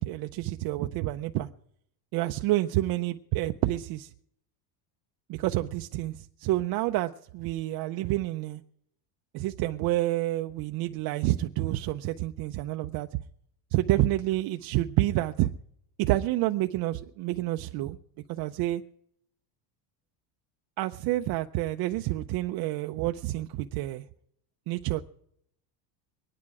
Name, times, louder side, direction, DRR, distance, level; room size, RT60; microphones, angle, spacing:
voice 1, 0.0-1.5 2.1-4.1 5.3-8.6 9.3-13.1 13.7-15.5 16.0-18.0 18.3-18.8 20.8-24.0 24.7-25.0, right 16 dB, 50° right, 0.6 m, -28 dB
23.0 x 9.8 x 4.8 m
cardioid pair, 150°, 47 cm